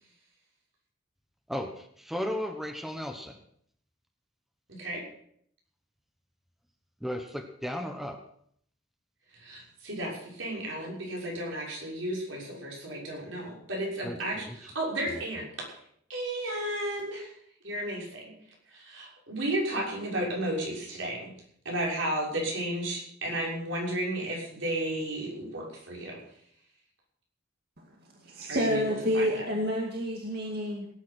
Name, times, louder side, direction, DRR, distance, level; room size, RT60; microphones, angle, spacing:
voice 1, 1.5-3.4 7.0-8.2 14.0-14.2 14.5-14.6 15.1-15.2, equal, ahead, 6 dB, 1.0 m, -35 dB
voice 2, 4.7-5.0 9.3-15.4 16.1-17.3 17.6-18.3 18.7-21.3 21.6-26.2 28.5-28.8 29.1-29.5, right 1 dB, 80° right, -3 dB, 6.3 m, -33 dB
voice 3, 28.2-30.9, left 1 dB, 55° right, 0 dB, 2.2 m, -29 dB
18.5 x 9.4 x 6.2 m, 0.67 s
head